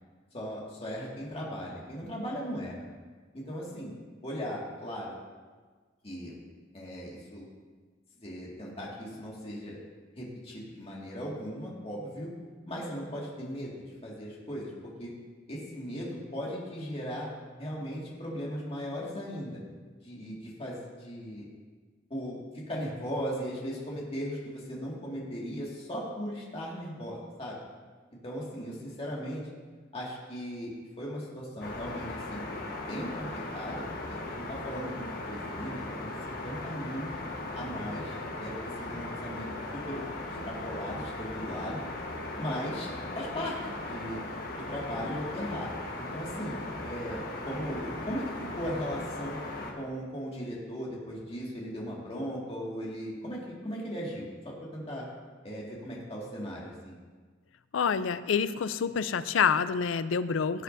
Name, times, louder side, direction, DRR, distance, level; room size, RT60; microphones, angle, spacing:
voice 1, 0.3-2.8 3.3-3.9 4.2-5.1 6.0-6.3 6.7-7.5 8.2-9.8 10.2-12.3 12.7-14.7 15.0-15.1 15.5-17.3 17.6-19.6 20.0-21.5 22.1-22.4 22.7-27.6 28.2-29.5 29.9-32.4 32.8-33.8 34.1-37.1 37.5-39.5 39.9-40.0 40.4-41.8 42.4-42.9 43.1-44.2 44.6-45.7 46.0-48.3 48.5-49.4 49.8-55.1 55.4-56.9, equal, 30° left, -4 dB, 2.1 m, -37 dB
sound 1, 31.6-49.7, left 2 dB, 50° left, 1.4 m, -38 dB
voice 2, 57.7-60.6, left 6 dB, 80° left, 14 dB, 0.4 m, -27 dB
17.0 x 8.5 x 2.7 m, 1.4 s
head